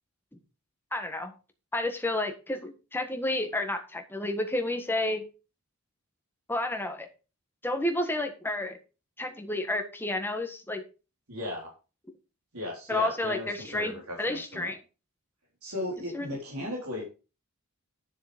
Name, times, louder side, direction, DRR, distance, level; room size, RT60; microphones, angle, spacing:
voice 1, 0.9-1.3 1.7-5.2 6.5-7.1 7.6-8.8 9.2-10.8 12.9-14.8 16.1-16.3, left 1 dB, 10° left, 5 dB, 1.5 m, -30 dB
voice 2, 11.3-11.7 12.5-14.7 15.6-17.0, left 1 dB, 75° right, -2 dB, 4.0 m, -36 dB
10.0 x 7.0 x 5.1 m, 0.32 s
head